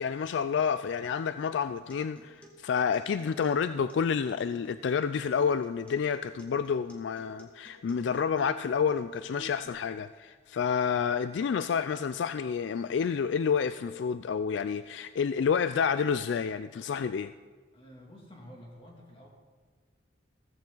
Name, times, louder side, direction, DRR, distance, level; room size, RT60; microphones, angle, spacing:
voice 1, 0.0-17.3, left 6 dB, 65° left, 13 dB, 0.3 m, -29 dB
Acoustic guitar, 1.7-9.7, equal, 5° left, 1.6 m, -54 dB
voice 2, 17.7-19.3, equal, 30° left, -1 dB, 2.5 m, -50 dB
15.5 x 14.0 x 3.9 m, 1.5 s
head